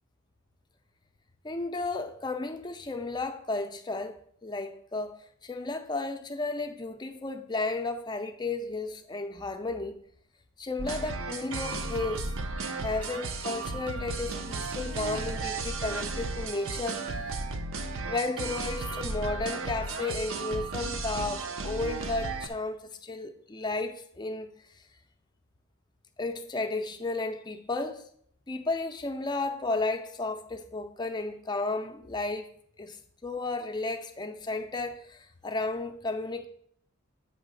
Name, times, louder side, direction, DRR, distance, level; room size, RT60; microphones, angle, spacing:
voice 1, 1.4-10.0 10.6-12.3 12.8-17.0 18.1-24.5 26.2-28.0 28.5-32.5 32.8-36.5, left 3 dB, 20° left, 0.6 m, -33 dB
sound 1, 10.8-22.5, right 3 dB, 75° right, 0.7 m, -34 dB
8.3 x 3.1 x 6.3 m
head